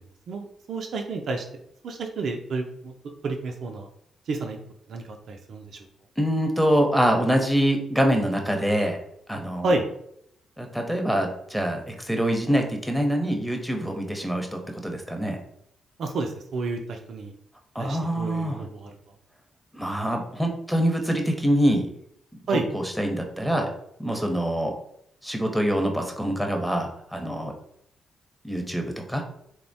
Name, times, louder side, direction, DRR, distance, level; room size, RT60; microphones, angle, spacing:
voice 1, 0.3-1.4 1.8-2.9 3.2-3.9 4.3-4.6 4.9-5.8 9.6-9.8 16.0-17.3 17.8-18.9 22.5-22.7, right 3 dB, 65° right, 4 dB, 0.3 m, -30 dB
voice 2, 6.2-9.0 9.3-9.8 10.6-15.4 17.7-18.7 19.7-21.9 22.5-23.7 24.0-24.7 25.2-27.5 28.4-29.2, equal, ahead, 2 dB, 0.6 m, -25 dB
2.9 x 2.0 x 2.7 m, 0.73 s
supercardioid pair, 50°, 0 cm